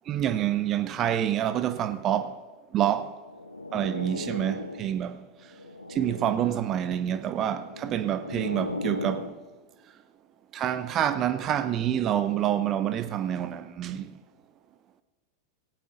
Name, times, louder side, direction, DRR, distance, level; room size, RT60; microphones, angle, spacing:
voice 1, 0.1-2.4 2.7-3.2 3.7-5.2 5.9-9.3 10.5-14.2, right 10 dB, 30° right, 0.6 m, -27 dB
sound 1, 3.2-5.0 5.5-6.6 7.5-9.4, left 2 dB, 80° left, 0.8 m, -37 dB
17.5 x 16.0 x 3.8 m
figure-of-eight pair, 90°, 0 cm